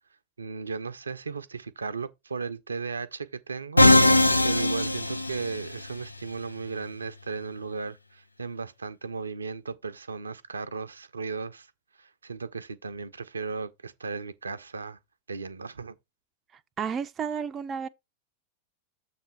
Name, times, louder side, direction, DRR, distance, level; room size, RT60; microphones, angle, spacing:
voice 1, 0.4-11.7 12.0-15.0 15.3-15.9, right 4 dB, 75° right, 0.6 m, -36 dB
Musical instrument, 3.8-5.9, left 1 dB, 85° left, 0.4 m, -20 dB
voice 2, 16.8-17.9, right 7 dB, 25° right, 0.5 m, -31 dB
7.1 x 3.3 x 5.9 m
figure-of-eight pair, 90°, 0 cm